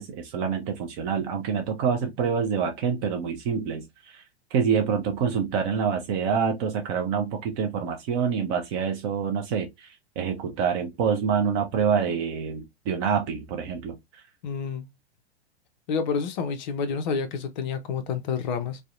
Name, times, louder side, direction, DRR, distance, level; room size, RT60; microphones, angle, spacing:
voice 1, 0.0-4.2 4.5-14.0, right 6 dB, 25° right, 0.4 m, -26 dB
voice 2, 14.4-14.9 15.9-18.8, left 5 dB, 45° left, 0.5 m, -29 dB
2.6 x 2.0 x 2.3 m
figure-of-eight pair, 105°, 33 cm